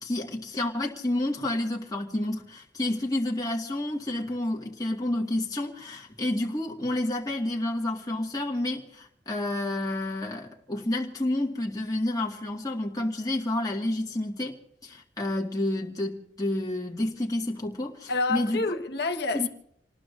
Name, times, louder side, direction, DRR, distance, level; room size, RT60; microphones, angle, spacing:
voice 1, 0.0-14.6 14.8-18.8 19.3-19.5, left 1 dB, 20° left, 1.7 m, -30 dB
voice 2, 18.1-19.5, left 3 dB, 60° left, 1.3 m, -28 dB
28.0 x 19.5 x 2.5 m
head